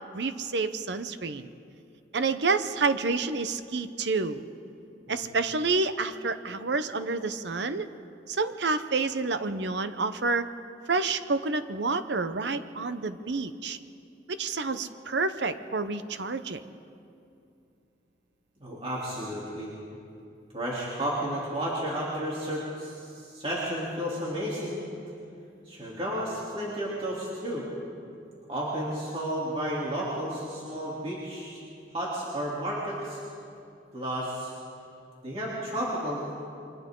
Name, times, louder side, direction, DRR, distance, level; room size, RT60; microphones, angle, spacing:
voice 1, 0.1-1.5 2.1-4.4 5.1-7.9 8.3-10.5 10.9-13.8 14.3-16.6, right 3 dB, 75° right, 10 dB, 0.8 m, -29 dB
voice 2, 18.6-19.7 20.5-24.8 25.6-27.7 28.5-31.6 31.9-33.2 33.9-34.5 35.2-36.3, equal, 30° right, -7 dB, 3.2 m, -32 dB
28.5 x 24.0 x 3.8 m, 2.6 s
head